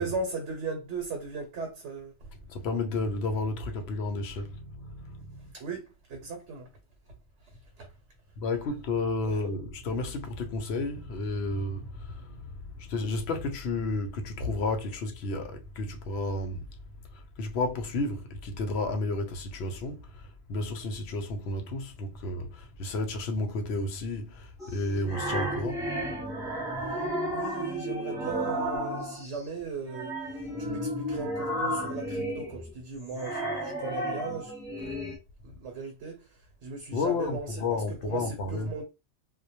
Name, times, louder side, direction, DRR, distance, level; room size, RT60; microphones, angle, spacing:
voice 1, 0.0-2.3 5.5-6.7 7.4-7.9 9.2-9.4 26.8-35.0 35.4-38.8, right 4 dB, 80° right, 1.0 m, -38 dB
voice 2, 2.5-5.5 8.4-16.6 17.1-25.9 26.8-26.9 36.9-38.7, left 2 dB, 70° left, 0.8 m, -32 dB
sound 1, 24.6-29.4 29.9-35.2, equal, 5° right, 0.5 m, -33 dB
2.1 x 2.1 x 2.8 m
omnidirectional pair, 1.2 m